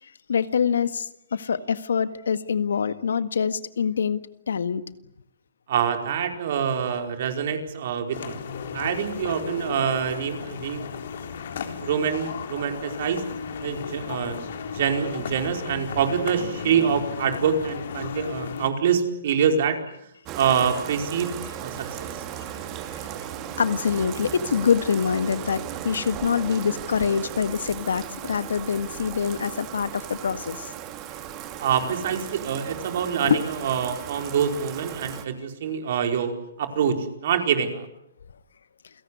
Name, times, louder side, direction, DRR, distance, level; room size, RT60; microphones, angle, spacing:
voice 1, 0.3-4.2 4.5-4.8 10.5-10.6 11.2-11.4 11.6-11.9 23.6-30.7 33.2-33.4, left 6 dB, 85° left, 13 dB, 1.7 m, -25 dB
voice 2, 5.7-8.4 8.7-10.9 11.8-13.2 13.6-14.4 14.7-19.8 20.3-22.1 31.6-37.9, right 7 dB, 55° right, 6 dB, 4.8 m, -25 dB
sound 1, 8.1-18.7, left 6 dB, 65° left, 3.9 m, -35 dB
Bathtub (filling or washing), 20.3-35.2, right 10 dB, 30° right, 2.7 m, -36 dB
28.5 x 17.5 x 9.8 m, 0.78 s
hypercardioid pair, 145°, 0 cm